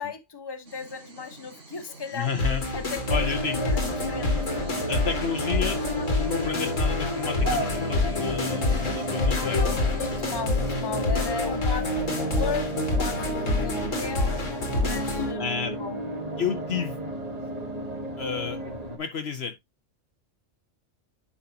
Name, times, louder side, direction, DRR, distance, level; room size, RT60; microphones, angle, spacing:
voice 1, 0.0-2.3 2.7-3.2 3.6-4.4 9.8-14.4 14.8-15.5 15.8-16.0, left 5 dB, 20° left, 1.0 m, -36 dB
sound 1, 0.6-10.4, right 3 dB, 75° right, 2.5 m, -41 dB
voice 2, 2.1-2.6 3.1-3.6 4.9-10.1 13.5-14.0 15.4-15.8 16.4-17.0 18.2-18.6 19.0-19.6, left 6 dB, 60° left, 1.0 m, -31 dB
sound 2, 2.4-15.3, left 3 dB, 90° left, 2.7 m, -27 dB
sound 3, 3.1-19.0, right 1 dB, 30° right, 1.9 m, -33 dB
10.0 x 5.5 x 2.8 m
omnidirectional pair, 1.3 m